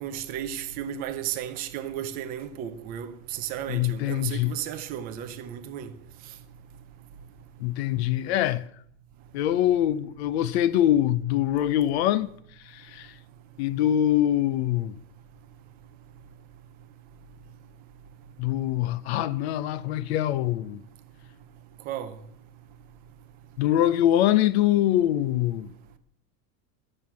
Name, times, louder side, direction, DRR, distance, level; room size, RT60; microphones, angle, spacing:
voice 1, 0.0-5.9 21.9-22.1, right 10 dB, 20° right, 0.5 m, -34 dB
voice 2, 3.7-4.5 7.6-8.6 9.3-12.3 12.7-13.1 13.6-15.0 18.4-20.8 23.6-25.7, left 12 dB, 40° left, 0.6 m, -24 dB
12.5 x 7.7 x 8.3 m
supercardioid pair, 175°, 48 cm